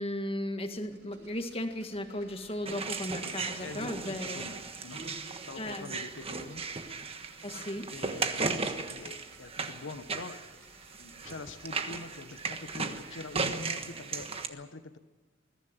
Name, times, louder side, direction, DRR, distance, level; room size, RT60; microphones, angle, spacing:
voice 1, 0.0-4.4 5.6-5.9 7.4-7.9, left 1 dB, 30° left, 6 dB, 1.8 m, -36 dB
sound 1, 0.8-13.4, right 3 dB, 65° right, 6.3 m, -59 dB
sound 2, 2.6-14.5, right 4 dB, 30° right, 1.4 m, -36 dB
voice 2, 3.6-5.2 5.5-6.6 7.9-10.4 11.0-15.0, left 2 dB, 85° left, 11 dB, 1.1 m, -44 dB
21.5 x 14.5 x 9.3 m, 1.3 s
head